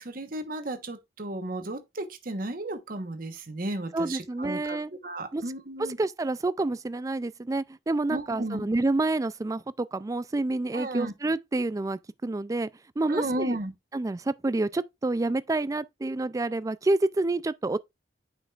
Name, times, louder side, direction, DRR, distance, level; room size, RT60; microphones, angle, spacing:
voice 1, 0.0-6.0 8.1-8.7 10.7-11.1 13.1-13.7, right 1 dB, 55° right, 1.2 m, -34 dB
voice 2, 3.9-4.9 5.3-5.4 6.0-12.7 13.0-13.6 13.9-17.8, right 2 dB, 20° right, 0.3 m, -28 dB
9.0 x 5.1 x 2.4 m
head